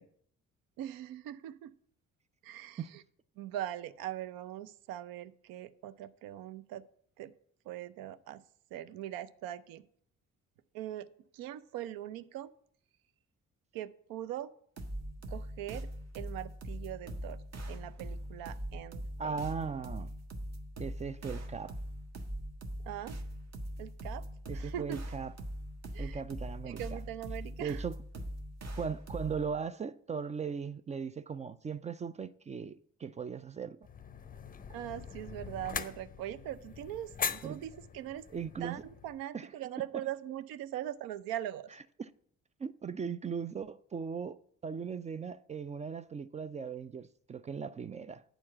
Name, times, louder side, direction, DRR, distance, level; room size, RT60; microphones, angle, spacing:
voice 1, 0.8-1.7 2.4-3.0 3.4-6.8 7.2-7.3 7.6-8.4 8.7-9.8 10.7-11.1 11.3-12.5 13.7-14.5 15.3-15.9 16.1-17.4 17.7-19.4 22.8-23.2 23.8-24.3 24.5-25.0 25.9-26.2 26.6-27.8 34.7-38.3 38.6-41.7, right 12 dB, 60° right, 0.7 m, -41 dB
sound 1, 14.8-29.5, equal, 40° right, 1.4 m, -41 dB
voice 2, 19.2-20.1 20.8-21.8 24.5-25.3 26.0-26.8 27.6-27.9 28.8-33.8 37.4-37.6 38.3-38.8 39.3-39.5 42.0-42.1 42.6-48.2, right 6 dB, 20° right, 0.3 m, -38 dB
sound 2, 33.8-39.2, left 6 dB, 20° left, 0.6 m, -41 dB
8.9 x 4.4 x 7.2 m
figure-of-eight pair, 40°, 40 cm